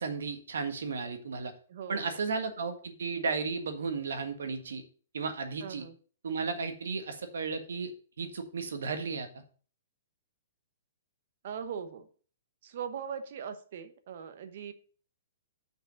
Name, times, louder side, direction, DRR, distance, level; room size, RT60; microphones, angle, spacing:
voice 1, 0.0-1.5 1.9-4.8 5.1-5.8 6.2-7.9 8.2-9.4, right 4 dB, 90° right, 7 dB, 1.5 m, -34 dB
voice 2, 1.7-2.0 5.6-5.9 11.4-12.1 12.6-14.7, right 7 dB, 50° right, 10 dB, 1.0 m, -40 dB
6.3 x 5.0 x 6.3 m, 0.41 s
hypercardioid pair, 170°, 0 cm